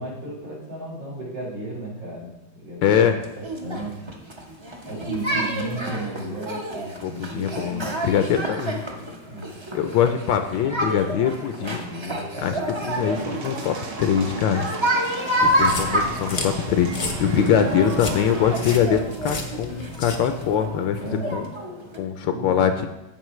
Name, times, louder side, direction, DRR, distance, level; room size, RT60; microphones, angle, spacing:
voice 1, 0.0-3.9 4.9-8.3 8.9-9.5 11.6-13.2 15.3-15.7 17.4-17.7 21.0-21.4 22.2-22.7, right 1 dB, 85° right, -6 dB, 4.3 m, -35 dB
voice 2, 2.8-3.2 7.0-8.8 9.7-11.8 12.4-12.6 12.9-14.7 15.4-21.0 21.3-21.5 22.0-22.9, left 8 dB, 75° left, 7 dB, 1.3 m, -23 dB
sound 1, 3.2-22.0, equal, 35° right, 0.4 m, -29 dB
sound 2, 12.9-18.8, right 4 dB, 65° right, 1.6 m, -35 dB
sound 3, 15.4-20.6, left 3 dB, 60° left, 0.4 m, -33 dB
15.0 x 5.1 x 3.1 m, 0.97 s
omnidirectional pair, 2.1 m